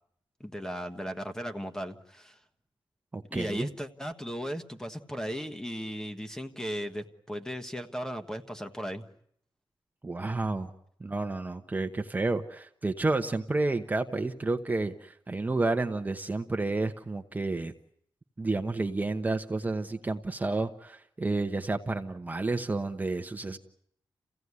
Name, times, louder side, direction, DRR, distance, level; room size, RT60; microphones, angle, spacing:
voice 1, 0.4-2.4 3.3-9.0, equal, 5° left, 7 dB, 1.4 m, -36 dB
voice 2, 3.1-3.7 10.0-10.7 11.0-17.7 18.4-23.6, right 3 dB, 20° right, 5 dB, 1.1 m, -30 dB
29.0 x 16.5 x 9.7 m, 0.70 s
wide cardioid pair, 155°, 8 cm